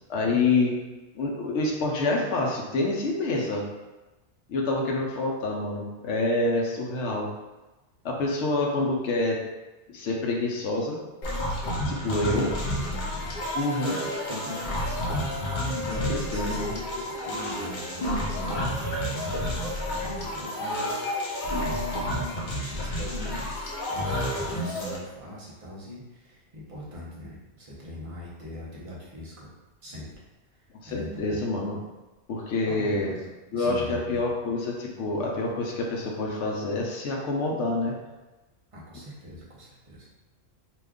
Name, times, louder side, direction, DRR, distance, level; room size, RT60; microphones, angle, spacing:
voice 1, 0.1-0.7 1.1-3.6 4.5-7.3 8.0-9.4 9.9-11.0 11.9-12.5 13.5-14.0 15.9-16.7 30.8-31.8 32.3-33.2 33.5-37.9, left 2 dB, 85° left, -1 dB, 0.9 m, -27 dB
sound 1, 11.2-25.0, left 1 dB, 50° left, 0.7 m, -30 dB
voice 2, 12.0-29.5 29.8-30.1 30.5-31.4 32.6-33.3 33.5-34.2 38.7-40.1, equal, 35° right, -6 dB, 0.8 m, -41 dB
2.9 x 2.3 x 3.5 m, 1.1 s
omnidirectional pair, 1.1 m